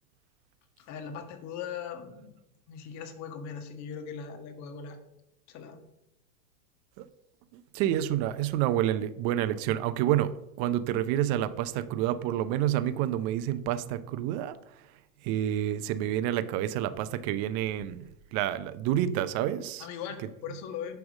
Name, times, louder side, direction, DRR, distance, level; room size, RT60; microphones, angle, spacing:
voice 1, 0.8-2.3 2.7-5.0 5.5-5.8 19.8-21.0, left 7 dB, 40° left, 1.5 m, -39 dB
voice 2, 7.5-14.6 15.2-18.0 18.3-19.9, right 12 dB, 45° right, 0.6 m, -28 dB
9.8 x 3.5 x 6.2 m
hypercardioid pair, 115°, 41 cm